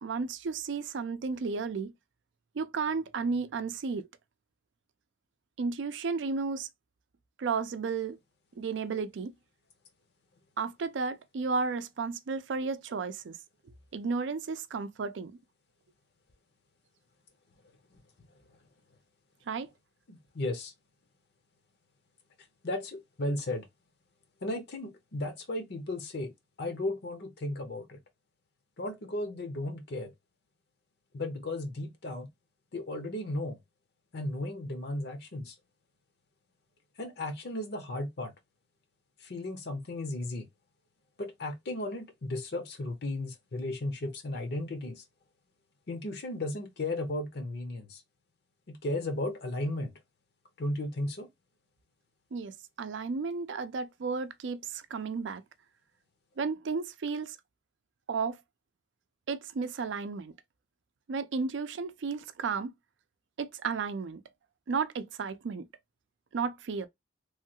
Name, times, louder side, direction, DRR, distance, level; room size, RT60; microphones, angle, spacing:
voice 1, 0.0-1.9 2.6-4.1 5.6-6.7 7.4-8.2 8.6-9.3 10.6-13.4 13.9-15.4 19.5-19.7 52.3-55.4 56.4-57.4 58.1-58.4 59.3-60.3 61.1-62.7 63.4-64.2 64.7-65.7 66.3-66.9, right 4 dB, 80° right, 0.4 m, -33 dB
voice 2, 20.1-20.7 22.6-23.7 24.4-26.3 26.6-28.0 28.8-30.1 31.1-32.3 32.7-33.6 34.1-35.6 37.0-38.3 39.2-40.5 41.2-45.0 45.9-48.0 48.7-50.0 50.6-51.3, left 1 dB, 65° left, 0.7 m, -35 dB
3.1 x 2.3 x 2.7 m
head